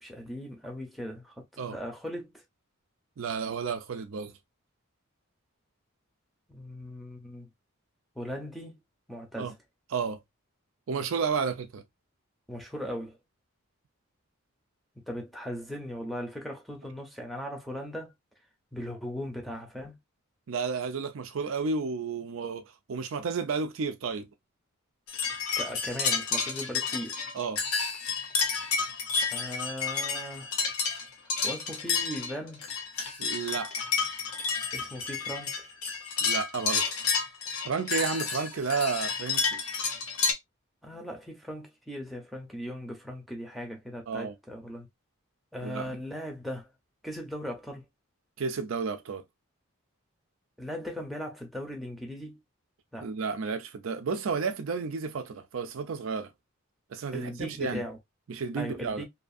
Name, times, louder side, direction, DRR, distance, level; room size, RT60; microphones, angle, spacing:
voice 1, 0.0-2.3 6.5-7.5 8.2-8.8 9.1-9.6 12.5-13.2 15.1-18.1 18.7-20.0 25.6-27.2 29.3-30.5 31.4-32.6 34.7-35.7 40.8-44.9 45.5-46.7 47.0-47.8 50.6-52.4 52.9-53.1 57.1-58.0 58.6-59.1, equal, ahead, 0.7 m, -38 dB
voice 2, 3.2-4.3 9.4-9.5 9.9-10.2 10.9-11.8 20.5-24.3 27.3-27.6 33.2-33.9 36.2-36.9 37.6-39.6 44.1-44.3 45.6-45.9 48.4-49.2 53.0-56.3 56.9-57.8 58.3-59.1, right 5 dB, 65° right, 0.4 m, -32 dB
sound 1, 25.1-40.3, left 5 dB, 85° left, 0.8 m, -30 dB
2.7 x 2.5 x 2.4 m
head